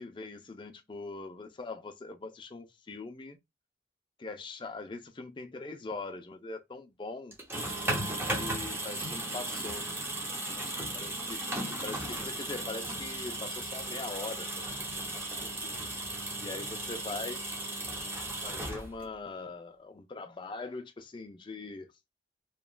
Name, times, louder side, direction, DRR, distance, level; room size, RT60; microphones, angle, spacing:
voice 1, 0.0-3.4 4.2-7.4 8.2-9.9 10.5-10.6 10.9-14.7 15.0-15.8 16.4-17.4 18.4-21.9, left 3 dB, 25° left, 0.4 m, -42 dB
sound 1, 7.3-19.2, right 1 dB, 10° right, 0.7 m, -36 dB
2.9 x 2.3 x 2.2 m
head